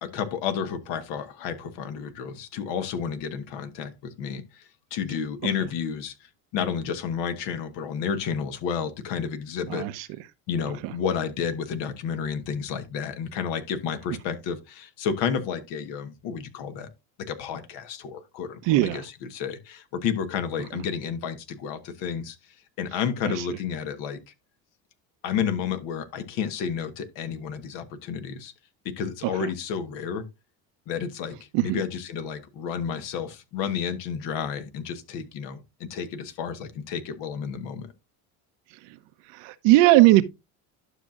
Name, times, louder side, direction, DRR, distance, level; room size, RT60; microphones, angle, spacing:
voice 1, 0.0-9.9 10.5-16.9 17.3-22.4 22.8-24.2 25.2-28.5 28.8-30.2 30.9-37.9, left 7 dB, 70° left, 1.4 m, -31 dB
voice 2, 9.7-10.1 10.8-10.9 18.7-19.0 29.4-29.5 31.5-31.8 39.3-40.2, right 17 dB, 70° right, 0.9 m, -19 dB
11.5 x 6.0 x 2.5 m
supercardioid pair, 85°, 46 cm